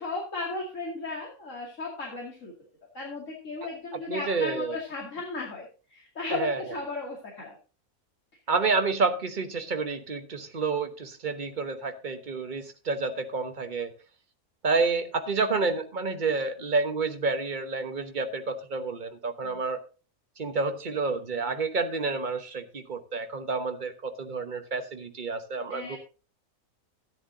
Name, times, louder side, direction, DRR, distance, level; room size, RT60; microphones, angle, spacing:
voice 1, 0.0-2.5 2.9-7.6 19.4-19.6 25.7-26.0, left 3 dB, 55° left, -3 dB, 2.8 m, -35 dB
voice 2, 4.1-4.8 6.3-6.6 8.5-13.9 14.6-19.8 20.4-26.0, right 4 dB, 35° right, 6 dB, 1.1 m, -29 dB
13.5 x 10.0 x 2.8 m, 0.34 s
omnidirectional pair, 1.6 m